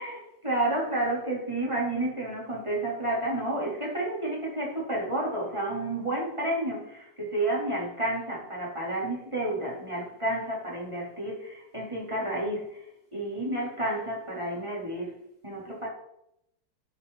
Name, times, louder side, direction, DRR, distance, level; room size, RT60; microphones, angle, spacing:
voice 1, 0.0-12.9 13.1-15.1 15.4-15.9, right 1 dB, 15° right, -4 dB, 4.0 m, -30 dB
14.0 x 8.0 x 4.2 m, 0.79 s
omnidirectional pair, 2.0 m